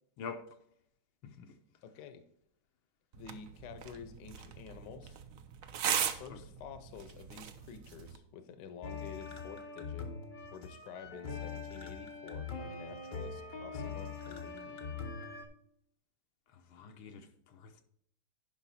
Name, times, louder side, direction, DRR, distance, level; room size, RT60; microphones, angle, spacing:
voice 1, 1.8-2.2 3.1-5.2 6.0-10.2 10.5-14.9, left 6 dB, 65° left, 1.3 m, -50 dB
sound 1, 3.1-8.2, right 8 dB, 70° right, 0.7 m, -39 dB
sound 2, 8.8-15.5, left 5 dB, 45° left, 0.6 m, -42 dB
voice 2, 16.7-17.8, left 5 dB, 80° left, 1.6 m, -46 dB
10.5 x 5.4 x 4.2 m
omnidirectional pair, 2.2 m